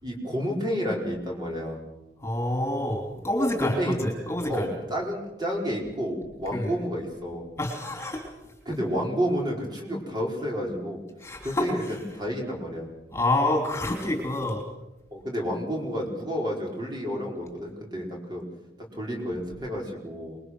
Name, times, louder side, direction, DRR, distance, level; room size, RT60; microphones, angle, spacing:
voice 1, 0.0-1.8 3.6-4.0 4.5-7.5 8.6-11.0 11.4-12.9 15.1-18.4 18.9-20.4, equal, 25° right, -1 dB, 5.0 m, -30 dB
voice 2, 2.2-4.7 6.5-6.7 7.6-8.2 11.2-11.7 13.1-14.6, left 1 dB, 15° left, 2 dB, 3.3 m, -27 dB
26.5 x 21.5 x 6.4 m, 0.98 s
head